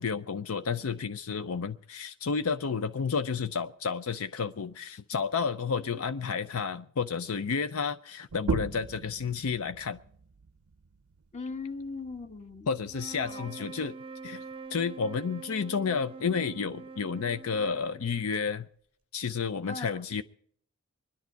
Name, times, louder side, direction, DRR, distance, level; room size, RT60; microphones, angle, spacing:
voice 1, 0.0-10.0 12.7-13.9 14.2-14.4 14.7-18.7 19.1-20.2, left 5 dB, 70° left, 0.5 m, -31 dB
sound 1, 8.3-13.5, right 4 dB, 75° right, 0.5 m, -38 dB
voice 2, 11.3-12.7 13.2-13.7 19.7-20.0, left 3 dB, 30° left, 1.3 m, -39 dB
sound 2, 12.8-18.3, right 4 dB, 25° right, 0.7 m, -44 dB
24.5 x 10.5 x 4.5 m
head